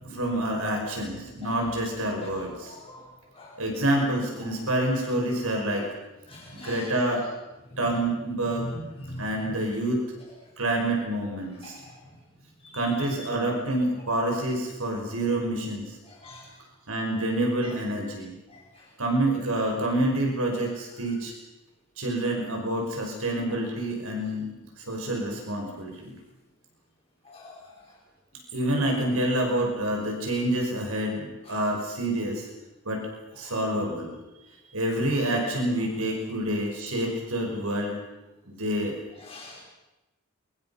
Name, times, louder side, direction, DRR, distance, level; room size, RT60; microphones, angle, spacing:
voice 1, 0.0-2.8 3.6-5.9 6.5-7.3 7.8-8.7 9.2-10.1 10.6-11.8 12.7-16.0 16.9-18.4 19.0-21.3 22.0-26.2 28.5-32.5 32.9-33.1 33.3-34.1 34.7-38.0 38.5-39.0, right 1 dB, 80° right, 1 dB, 5.6 m, -27 dB
voice 2, 2.7-3.6 4.4-4.5 6.3-6.9 7.7-8.0 8.4-9.6 10.2-10.3 11.6-12.2 12.6-13.3 16.0-16.5 17.6-17.7 18.5-18.9 20.6-20.7 27.2-28.0 28.7-28.9 31.4-31.6 33.4-33.5 39.1-39.6, left 1 dB, 25° left, -3 dB, 5.1 m, -43 dB
28.5 x 23.5 x 5.8 m, 1.0 s
head